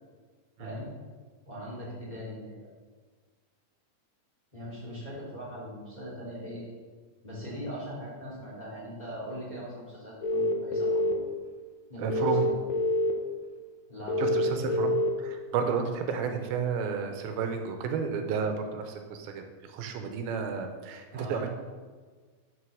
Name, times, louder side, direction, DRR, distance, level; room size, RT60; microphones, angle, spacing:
voice 1, 1.5-2.7 4.5-6.6 7.2-11.2 11.9-12.6 13.9-14.7 21.1-21.4, equal, 15° left, -6 dB, 2.4 m, -40 dB
sound 1, 10.2-11.1 12.1-13.1 14.1-15.1, left 2 dB, 70° left, 1.8 m, -26 dB
voice 2, 12.0-12.5 14.2-21.5, right 6 dB, 85° right, 5 dB, 2.6 m, -32 dB
6.8 x 6.4 x 6.3 m, 1.5 s
omnidirectional pair, 4.2 m